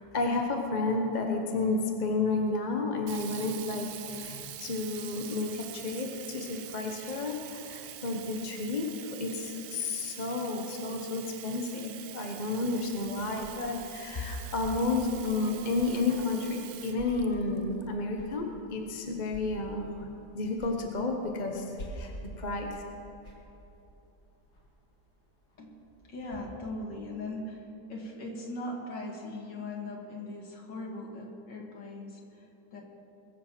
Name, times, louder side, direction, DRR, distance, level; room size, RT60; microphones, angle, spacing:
voice 1, 0.1-20.1 20.3-22.1 22.4-22.8, left 3 dB, 30° left, 2 dB, 1.0 m, -31 dB
Sink (filling or washing), 3.1-17.8, right 11 dB, 75° right, 1.3 m, -45 dB
sound 1, 12.3-26.4, equal, 65° left, 3.1 m, -50 dB
voice 2, 26.1-32.8, left 2 dB, 85° left, -1 dB, 2.7 m, -40 dB
21.5 x 7.5 x 6.0 m, 3.0 s
omnidirectional pair, 1.9 m